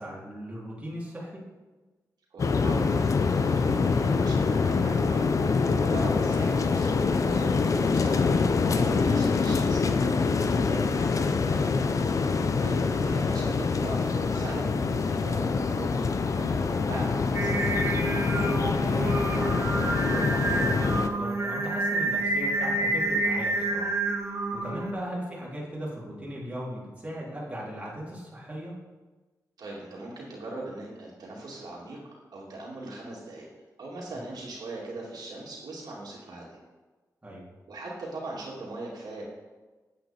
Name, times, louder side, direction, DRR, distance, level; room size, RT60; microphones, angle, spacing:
voice 1, 0.0-1.4 12.3-12.5 18.4-28.7 34.1-34.2 37.2-37.4, equal, 20° right, -6 dB, 3.1 m, -38 dB
voice 2, 2.3-5.4 5.8-8.4 8.8-11.7 12.6-17.5 24.7-24.9 29.6-32.0 32.3-33.5 33.8-36.6 37.7-39.2, right 2 dB, 80° right, -4 dB, 2.6 m, -40 dB
sound 1, 2.4-21.1, left 4 dB, 55° left, 0.6 m, -25 dB
Singing, 17.3-24.9, right 2 dB, 40° right, 1.2 m, -28 dB
8.9 x 8.2 x 4.4 m, 1.2 s
wide cardioid pair, 90°, 7 cm